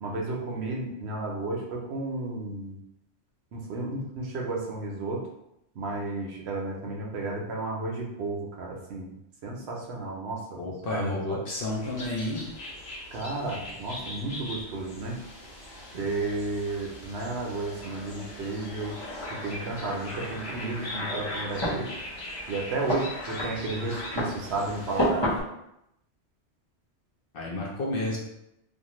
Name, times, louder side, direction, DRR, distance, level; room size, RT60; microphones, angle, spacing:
voice 1, 0.0-2.8 3.5-5.2 5.7-9.1 9.4-11.4 13.1-15.2 15.9-19.0 19.3-21.9 22.5-25.3, right 2 dB, 65° right, -1 dB, 0.8 m, -33 dB
voice 2, 10.6-12.4 27.3-28.2, left 2 dB, 60° left, -3 dB, 0.7 m, -31 dB
sound 1, 11.6-25.4, equal, 25° left, 0.8 m, -36 dB
sound 2, 11.8-25.1, left 1 dB, 75° left, 1.1 m, -42 dB
2.5 x 2.5 x 2.9 m, 0.83 s
omnidirectional pair, 1.2 m